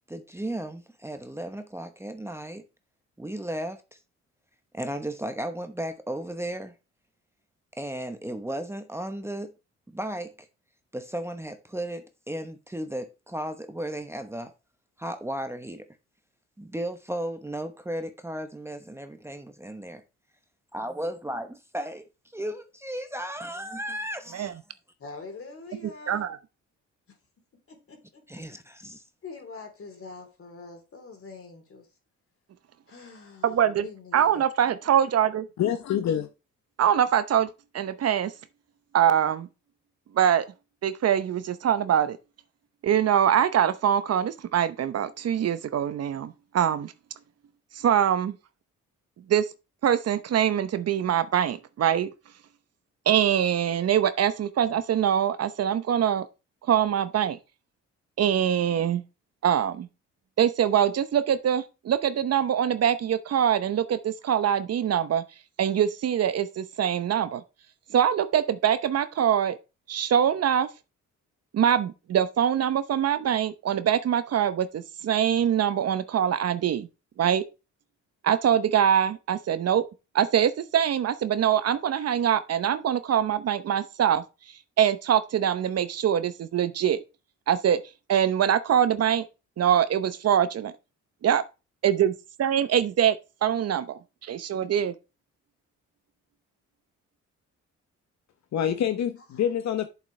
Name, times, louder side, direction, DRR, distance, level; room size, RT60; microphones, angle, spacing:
voice 1, 0.1-2.6 3.2-4.0 4.7-6.7 7.8-9.5 9.9-10.3 10.9-14.5 15.0-15.9 16.6-20.0 20.7-22.0 22.3-24.5 28.3-29.0, right 1 dB, 10° right, 0.9 m, -35 dB
voice 2, 25.0-26.2 27.1-27.2 27.7-28.4 29.2-31.9 32.9-34.4 98.6-98.8 99.3-99.5, left 4 dB, 45° left, 3.3 m, -44 dB
voice 3, 26.1-26.4 33.4-33.8 34.1-35.4 36.8-37.5 37.7-38.3 38.9-39.5 40.1-40.4 40.8-42.2 42.8-46.9 47.7-48.4 49.3-49.4 49.8-52.1 53.1-56.2 56.7-57.4 58.2-59.0 59.4-59.9 60.4-65.2 65.6-67.4 67.9-69.6 69.9-70.7 71.5-76.9 77.2-77.4 78.2-79.8 80.1-84.2 84.8-87.0 87.5-87.8 88.1-89.3 89.6-90.7 91.2-91.4 91.8-92.1 92.4-93.2 93.4-94.9, right 9 dB, 55° right, 0.8 m, -23 dB
voice 4, 35.6-36.3 98.5-99.9, left 9 dB, 65° left, 0.9 m, -26 dB
8.2 x 7.3 x 3.2 m
cardioid pair, 90°, 30 cm